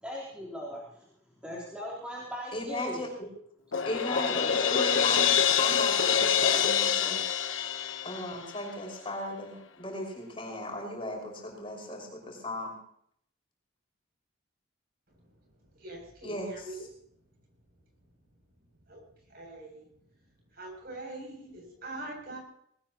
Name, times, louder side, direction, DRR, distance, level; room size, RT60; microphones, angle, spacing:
voice 1, 0.0-1.0 1.4-3.0 4.1-5.1, equal, 5° right, -6 dB, 3.3 m, -39 dB
voice 2, 2.5-3.1 3.8-5.3 5.6-7.2 8.0-12.8 16.2-16.9, left 1 dB, 25° left, 0 dB, 5.8 m, -36 dB
Crash cymbal, 3.7-8.7, left 8 dB, 80° left, 1.1 m, -26 dB
voice 3, 15.8-16.8 18.9-19.0 19.3-19.8 20.6-22.4, right 2 dB, 50° right, 1 dB, 7.8 m, -42 dB
21.0 x 18.5 x 3.0 m, 0.67 s
head